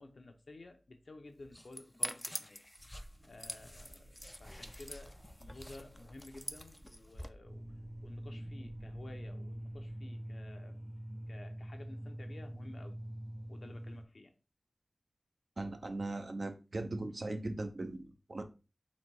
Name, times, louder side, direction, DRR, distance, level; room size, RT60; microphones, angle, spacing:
voice 1, 0.0-2.6 3.2-7.7 8.0-10.8 11.3-13.0 13.4-14.3, left 2 dB, 75° left, 0.7 m, -53 dB
sound 1, 1.4-7.3, left 1 dB, 15° left, 0.3 m, -45 dB
sound 2, 2.8-9.9, right 1 dB, 85° right, 1.8 m, -59 dB
sound 3, 7.5-14.1, right 1 dB, 30° right, 0.9 m, -45 dB
voice 2, 15.6-18.4, right 2 dB, 60° right, 0.6 m, -39 dB
4.1 x 2.2 x 4.6 m
wide cardioid pair, 60°, 0 cm